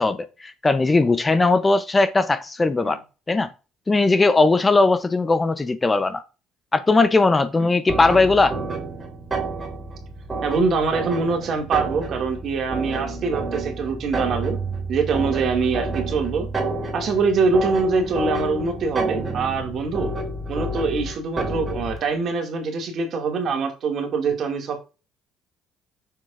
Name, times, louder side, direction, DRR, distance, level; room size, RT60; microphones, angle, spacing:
voice 1, 0.0-3.0 3.3-3.5 3.9-6.2 6.7-8.6, left 3 dB, 25° left, 0.8 m, -19 dB
sound 1, 7.9-22.0, right 2 dB, 25° right, 3.0 m, -29 dB
voice 2, 10.4-14.6 14.9-16.5 16.9-20.1 20.5-24.8, right 4 dB, 55° right, 2.3 m, -24 dB
6.8 x 6.0 x 2.6 m
supercardioid pair, 70°, 0 cm